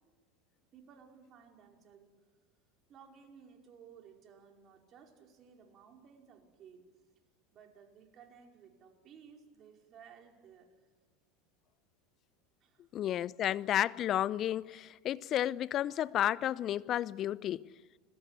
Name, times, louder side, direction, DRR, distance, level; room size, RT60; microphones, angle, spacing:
voice 1, 0.7-2.1 2.9-6.8 7.5-10.7 12.6-12.9, right 7 dB, 40° right, 5.1 m, -57 dB
voice 2, 12.9-17.6, left 12 dB, 40° left, 0.7 m, -32 dB
29.5 x 21.5 x 8.3 m
hypercardioid pair, 85°, 0 cm